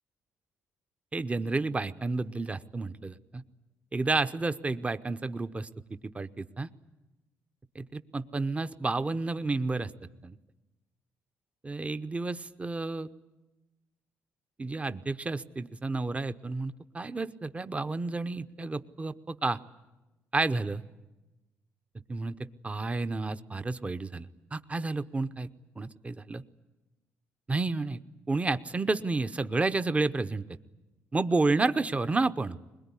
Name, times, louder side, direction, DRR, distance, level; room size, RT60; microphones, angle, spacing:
voice 1, 1.1-3.4 3.9-6.7 7.7-9.9 10.2-10.4 11.6-13.1 14.6-19.6 20.3-20.8 22.1-24.3 24.5-25.5 25.8-26.4 27.5-28.0 28.3-30.4 31.1-32.7, right 3 dB, 25° right, 11 dB, 0.8 m, -31 dB
21.5 x 21.0 x 9.9 m, 1.1 s
cardioid pair, 80°, 6 cm